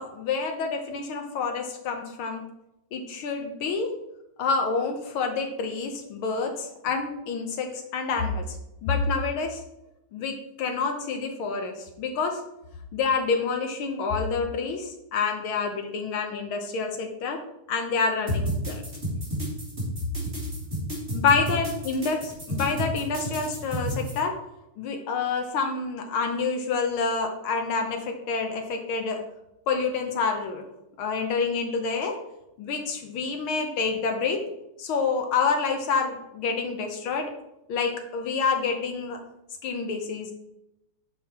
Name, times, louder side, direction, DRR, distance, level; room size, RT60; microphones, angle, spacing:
voice 1, 0.0-2.4 2.9-3.9 4.4-8.6 8.8-9.6 10.1-12.4 12.9-17.4 17.7-18.8 21.1-22.2 22.5-24.3 24.8-29.2 29.7-30.6 31.0-32.2 32.6-34.4 34.8-37.3 37.7-39.2 39.6-40.3, left 4 dB, 75° left, 4 dB, 1.2 m, -28 dB
sound 1, 18.3-24.2, equal, 20° right, 2.7 m, -31 dB
9.2 x 5.6 x 4.3 m, 0.86 s
omnidirectional pair, 3.5 m